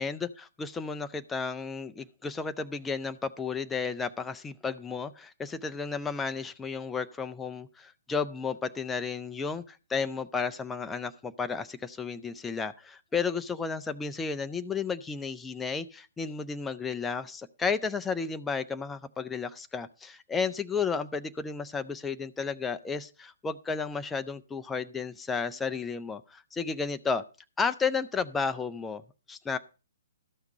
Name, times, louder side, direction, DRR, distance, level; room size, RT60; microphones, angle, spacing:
voice 1, 0.0-27.2 27.6-29.0 29.3-29.6, left 5 dB, 10° left, 9 dB, 0.4 m, -33 dB
13.0 x 5.8 x 5.2 m, 0.34 s
figure-of-eight pair, 125°, 0 cm